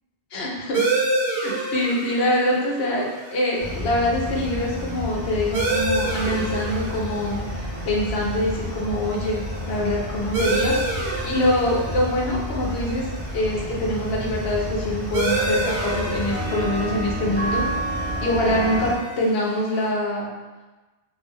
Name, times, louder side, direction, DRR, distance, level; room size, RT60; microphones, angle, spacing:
voice 1, 0.3-0.8 1.4-3.1 3.3-7.4 7.9-10.7 11.2-13.0 13.3-17.6 18.2-20.3, left 1 dB, 75° left, -3 dB, 0.9 m, -24 dB
sound 1, 0.7-19.9, right 2 dB, 80° right, 0.9 m, -30 dB
sound 2, 3.6-18.9, equal, 30° right, 0.7 m, -30 dB
2.4 x 2.0 x 3.4 m, 1.2 s
omnidirectional pair, 1.1 m